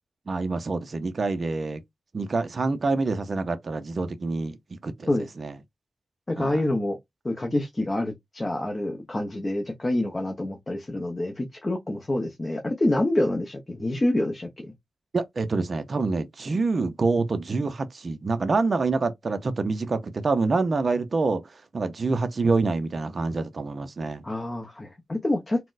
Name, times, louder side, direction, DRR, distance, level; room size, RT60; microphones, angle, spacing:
voice 1, 0.3-1.8 2.1-4.6 4.8-5.6 6.4-6.6 15.1-24.2, right 3 dB, 40° right, 0.4 m, -26 dB
voice 2, 6.3-7.0 7.2-14.5 24.2-25.6, left 1 dB, 20° left, 0.5 m, -27 dB
4.1 x 2.0 x 2.4 m
wide cardioid pair, 130°, 0 cm